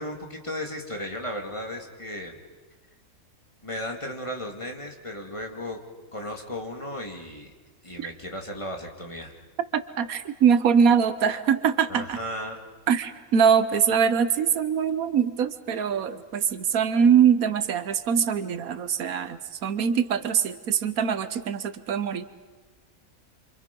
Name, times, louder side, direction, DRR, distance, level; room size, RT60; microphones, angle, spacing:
voice 1, 0.0-2.4 3.6-5.8 6.1-7.5 7.8-9.4 11.9-12.6, left 1 dB, 20° left, 2 dB, 2.3 m, -35 dB
voice 2, 9.7-12.2 12.9-22.2, right 7 dB, 85° right, 12 dB, 1.4 m, -23 dB
28.0 x 26.5 x 5.3 m, 1.3 s
omnidirectional pair, 1.5 m